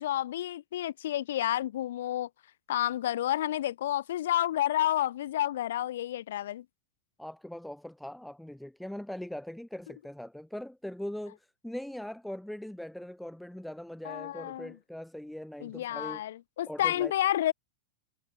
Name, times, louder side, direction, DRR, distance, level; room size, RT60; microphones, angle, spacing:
voice 1, 0.0-2.3 2.7-6.7 14.0-14.8 15.6-17.5, left 12 dB, 60° left, 0.6 m, -30 dB
voice 2, 7.2-16.2 16.7-17.1, left 1 dB, ahead, 1.9 m, -41 dB
figure-of-eight pair, 90°, 0 cm